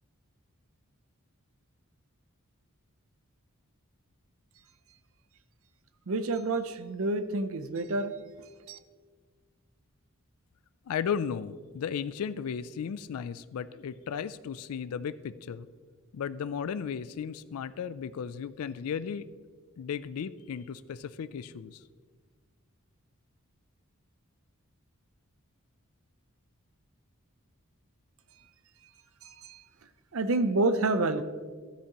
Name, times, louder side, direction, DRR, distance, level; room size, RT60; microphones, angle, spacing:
voice 1, 6.1-8.1 8.7-8.8 29.4-29.6 30.1-31.2, right 2 dB, 70° right, 10 dB, 0.6 m, -28 dB
voice 2, 10.9-15.7 16.1-19.2 19.8-21.8, left 7 dB, 80° left, 14 dB, 0.3 m, -35 dB
13.0 x 10.0 x 3.0 m, 1.5 s
head